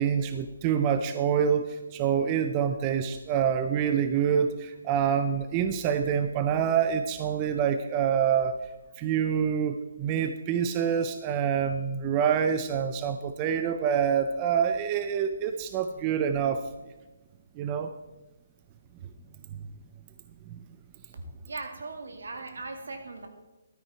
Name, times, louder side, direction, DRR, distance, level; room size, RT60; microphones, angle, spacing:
voice 1, 0.0-8.5 9.0-16.6 17.6-17.9, right 8 dB, 20° right, 8 dB, 0.4 m, -26 dB
voice 2, 21.1-23.3, right 3 dB, 75° right, 5 dB, 2.2 m, -39 dB
12.5 x 9.3 x 4.4 m, 1.1 s
hypercardioid pair, 170°, 0 cm